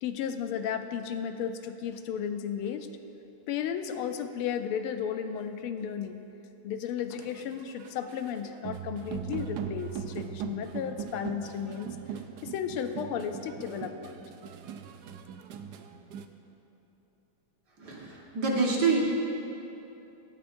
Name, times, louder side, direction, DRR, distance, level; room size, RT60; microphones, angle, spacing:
voice 1, 0.0-2.9 3.5-6.2 6.6-12.0 12.4-14.2, left 8 dB, 85° left, 8 dB, 1.5 m, -34 dB
sound 1, 7.2-16.3, right 8 dB, 75° right, 0.9 m, -40 dB
voice 2, 17.8-19.0, right 4 dB, 50° right, -3 dB, 1.9 m, -27 dB
17.5 x 13.5 x 2.6 m, 3.0 s
omnidirectional pair, 2.4 m